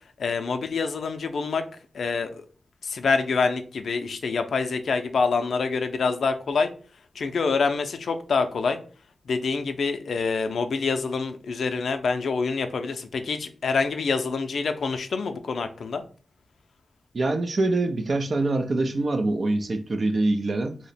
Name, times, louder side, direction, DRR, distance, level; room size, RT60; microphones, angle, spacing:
voice 1, 0.2-1.6 1.9-2.4 2.8-6.7 7.2-8.8 9.3-16.0, left 4 dB, 80° left, 0.4 m, -26 dB
voice 2, 17.1-20.8, right 2 dB, 50° right, 0.4 m, -24 dB
2.8 x 2.1 x 4.0 m
wide cardioid pair, 105°, 0 cm